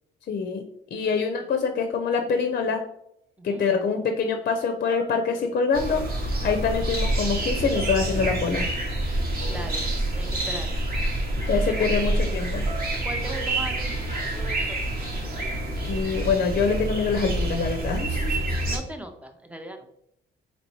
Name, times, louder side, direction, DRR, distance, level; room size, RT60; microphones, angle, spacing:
voice 1, 0.3-0.6 0.9-2.8 3.4-6.0 6.4-8.7 11.5-12.7 15.8-18.4, left 5 dB, 50° left, 5 dB, 0.5 m, -25 dB
sound 1, 3.0-3.1 3.6-3.8 4.2-4.6 4.9-6.2 6.6-6.7 7.7-9.8 11.4-12.4 12.7-14.5 15.3-16.5, right 3 dB, 85° right, 1.2 m, -44 dB
sound 2, 5.7-18.8, right 1 dB, 50° right, 1.0 m, -27 dB
voice 2, 9.5-9.8 10.1-10.7 11.7-11.9 13.0-14.0 14.3-14.8 18.6-19.9, right 1 dB, 5° right, 6 dB, 0.5 m, -38 dB
4.1 x 3.0 x 3.0 m, 0.73 s
cardioid pair, 90°, 20 cm